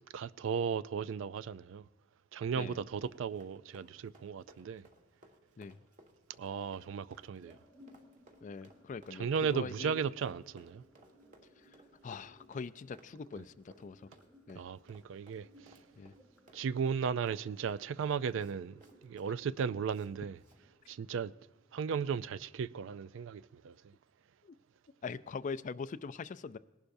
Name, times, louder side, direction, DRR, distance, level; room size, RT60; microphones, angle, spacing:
voice 1, 0.1-1.8 2.3-4.8 6.4-7.6 9.2-10.8 14.6-15.5 16.5-18.7 19.0-20.4 20.9-21.3 21.7-23.7, right 6 dB, 65° right, 0.3 m, -35 dB
Run, 2.7-20.1 20.4-20.6, right 1 dB, 40° right, 1.7 m, -62 dB
sound 1, 6.4-22.4, equal, ahead, 1.3 m, -62 dB
voice 2, 8.4-10.0 12.0-14.1 14.5-14.6 16.0-16.1 24.4-24.5 25.0-26.6, left 5 dB, 40° left, 0.4 m, -42 dB
19.5 x 11.5 x 2.6 m
head